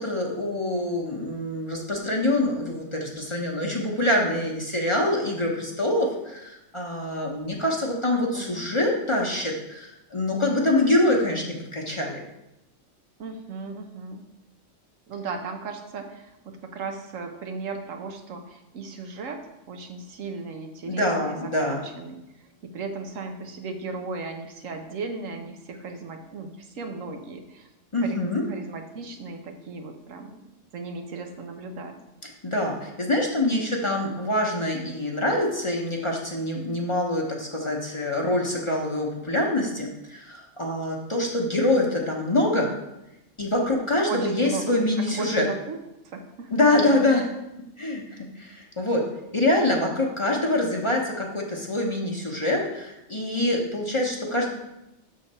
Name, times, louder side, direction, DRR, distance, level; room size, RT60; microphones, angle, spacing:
voice 1, 0.0-12.2 20.8-21.8 27.9-28.4 32.4-42.7 43.4-45.4 46.5-47.3 47.8-49.0 49.3-54.5, left 1 dB, 30° left, -1 dB, 0.8 m, -25 dB
voice 2, 8.3-8.7 13.2-14.2 15.1-19.4 19.7-22.2 22.6-27.7 28.0-30.4 30.7-32.0 44.0-45.8 46.0-46.5, right 4 dB, 80° right, 5 dB, 1.2 m, -36 dB
7.1 x 3.8 x 5.3 m, 0.90 s
omnidirectional pair, 1.3 m